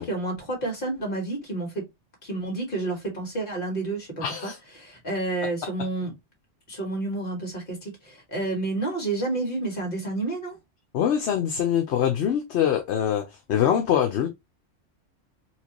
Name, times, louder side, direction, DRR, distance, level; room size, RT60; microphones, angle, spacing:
voice 1, 0.0-1.8 2.2-4.5 4.8-6.1 6.7-10.6, right 2 dB, 45° left, 1.7 m, -30 dB
voice 2, 4.2-4.6 10.9-14.3, left 9 dB, 65° left, 0.9 m, -24 dB
4.4 x 2.4 x 2.9 m
omnidirectional pair, 1.3 m